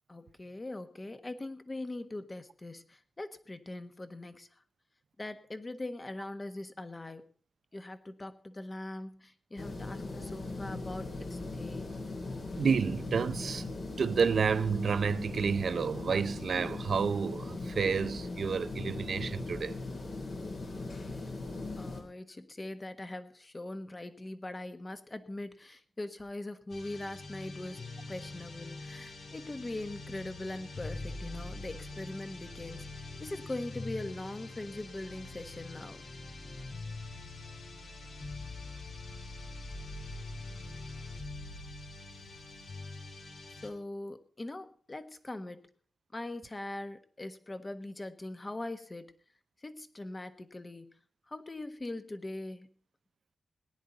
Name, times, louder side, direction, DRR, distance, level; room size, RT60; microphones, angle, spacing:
voice 1, 0.1-4.6 5.2-7.3 7.7-11.9 21.8-36.1 43.6-45.7 46.1-49.2 49.6-52.7, left 2 dB, 30° left, 1.3 m, -41 dB
sound 1, 9.6-22.0, left 2 dB, 65° left, 3.6 m, -39 dB
voice 2, 12.6-13.7 14.0-19.7, right 6 dB, 70° right, 0.7 m, -30 dB
sound 2, 26.7-43.7, left 2 dB, 90° left, 3.2 m, -44 dB
18.5 x 10.5 x 4.0 m
wide cardioid pair, 90°, 0 cm